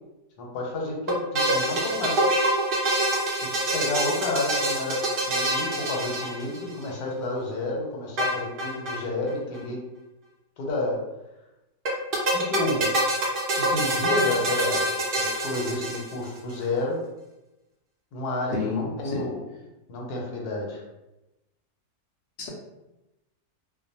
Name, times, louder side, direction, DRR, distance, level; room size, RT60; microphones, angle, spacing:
voice 1, 0.4-2.3 3.4-9.8 10.6-11.0 12.3-12.9 13.5-14.9 15.2-17.0 18.1-19.4 19.9-20.8, left 2 dB, 85° left, -1 dB, 1.2 m, -30 dB
sound 1, 1.1-6.9 8.2-9.0 9.3-9.4 9.5-9.6 11.9-16.4, right 1 dB, 80° right, 0.4 m, -26 dB
voice 2, 18.5-19.4 22.4-22.5, left 4 dB, 70° left, -2 dB, 0.7 m, -31 dB
2.5 x 2.1 x 2.7 m, 0.97 s
omnidirectional pair, 1.6 m